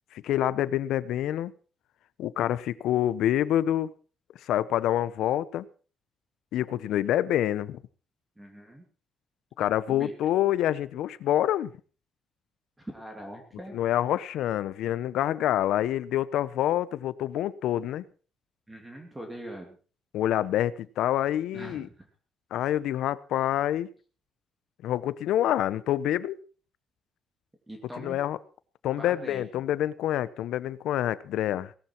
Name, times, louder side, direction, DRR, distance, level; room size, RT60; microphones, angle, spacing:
voice 1, 0.1-1.5 2.2-3.9 4.5-5.6 6.5-7.8 9.6-11.7 13.7-18.0 20.1-21.9 22.5-23.9 24.8-26.4 28.0-28.4 28.8-31.7, left 12 dB, 75° left, 0.9 m, -27 dB
voice 2, 8.4-8.8 9.9-10.1 12.8-13.8 18.7-19.8 21.5-22.1 27.7-28.2 29.0-29.4, right 1 dB, 10° right, 2.6 m, -42 dB
18.5 x 13.0 x 4.6 m
cardioid pair, 175°, 0 cm